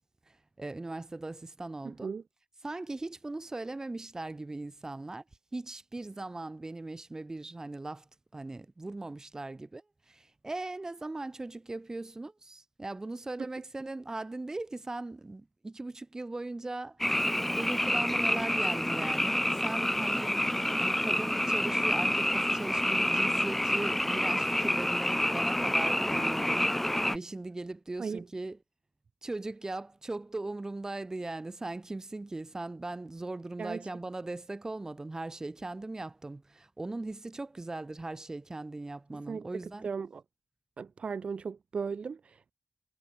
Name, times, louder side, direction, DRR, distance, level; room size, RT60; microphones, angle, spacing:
voice 1, 0.3-2.2 2.6-5.2 5.5-20.4 20.8-28.6 29.2-39.9, right 2 dB, 30° right, 1.9 m, -39 dB
Frog, 17.0-27.2, left 1 dB, 10° left, 0.9 m, -28 dB
voice 2, 39.1-39.5 39.8-40.2 40.8-42.5, right 5 dB, 70° right, 0.8 m, -36 dB
wide cardioid pair, 75°, 2 cm